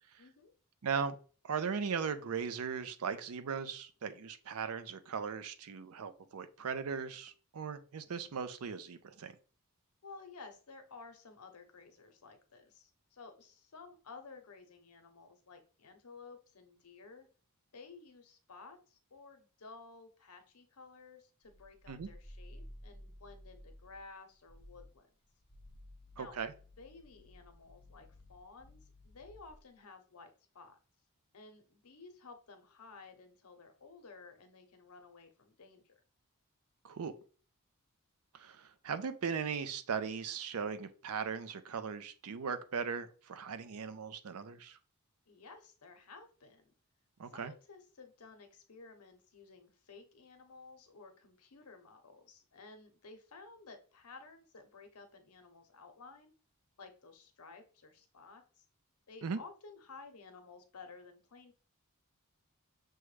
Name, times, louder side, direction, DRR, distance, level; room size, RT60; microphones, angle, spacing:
voice 1, 0.2-0.5 10.0-17.3 17.7-25.1 26.2-26.3 26.8-30.8 31.3-35.9 45.3-46.7 47.3-56.3 56.8-58.6 59.1-61.5, left 4 dB, 80° left, 7 dB, 0.8 m, -54 dB
voice 2, 0.8-1.2 1.4-9.3 21.9-22.1 26.2-26.5 36.8-37.1 38.3-44.8 47.2-47.5 59.2-59.4, right 6 dB, 75° right, 11 dB, 0.5 m, -38 dB
sound 1, 21.4-24.1 24.4-25.0 25.4-29.6, left 1 dB, 25° left, 0.7 m, -55 dB
6.2 x 2.2 x 3.2 m, 0.39 s
head